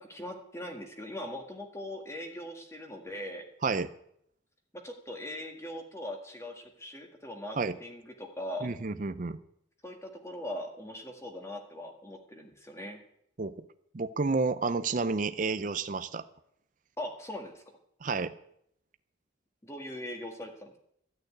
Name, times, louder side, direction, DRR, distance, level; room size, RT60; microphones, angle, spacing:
voice 1, 0.0-3.5 4.8-8.7 9.8-13.0 17.0-17.8 19.6-20.8, left 1 dB, 15° left, 3 dB, 1.7 m, -40 dB
voice 2, 8.6-9.4 13.4-13.5 13.9-16.2 18.0-18.3, right 4 dB, 40° right, 11 dB, 0.5 m, -30 dB
13.5 x 6.6 x 9.6 m, 0.72 s
head